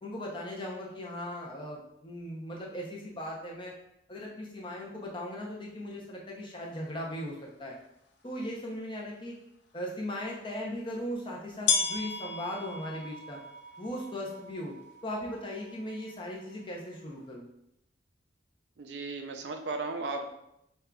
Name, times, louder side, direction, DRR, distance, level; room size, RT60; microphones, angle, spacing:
voice 1, 0.0-3.7 4.1-7.7 8.2-9.3 9.7-13.4 13.8-14.7 15.0-17.5, left 1 dB, 25° left, -2 dB, 0.6 m, -38 dB
sound 1, 7.7-7.8 8.6-8.7 10.4-10.5 11.6-17.2, left 5 dB, 70° left, 0.5 m, -35 dB
voice 2, 18.8-20.3, right 3 dB, 70° right, 4 dB, 0.4 m, -35 dB
5.2 x 2.3 x 2.3 m, 0.80 s
head